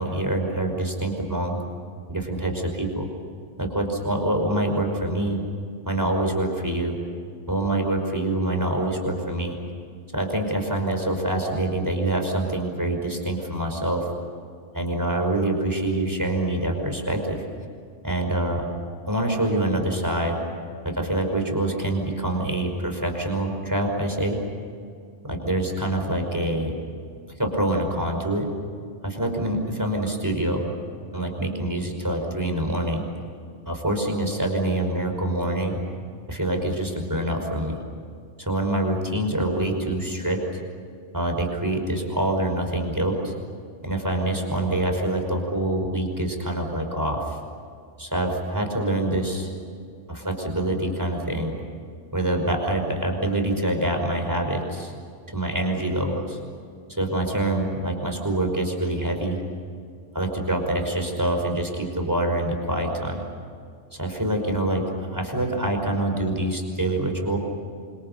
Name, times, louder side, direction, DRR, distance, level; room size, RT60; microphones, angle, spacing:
voice 1, 0.0-1.6 2.1-3.1 3.6-5.4 5.9-7.0 7.5-9.6 10.1-14.1 14.7-17.4 18.0-18.7 19.1-20.4 20.9-24.4 25.2-26.8 27.4-28.5 29.0-30.7 31.1-33.0 33.7-35.8 36.3-37.8 38.4-40.4 41.1-43.3 43.8-47.4 48.0-49.5 50.1-51.6 52.1-54.9 55.3-56.4 56.9-59.4 60.1-63.2 63.9-67.4, right 1 dB, 15° right, 3 dB, 5.3 m, -25 dB
29.0 x 25.5 x 6.7 m, 2.3 s
omnidirectional pair, 1.2 m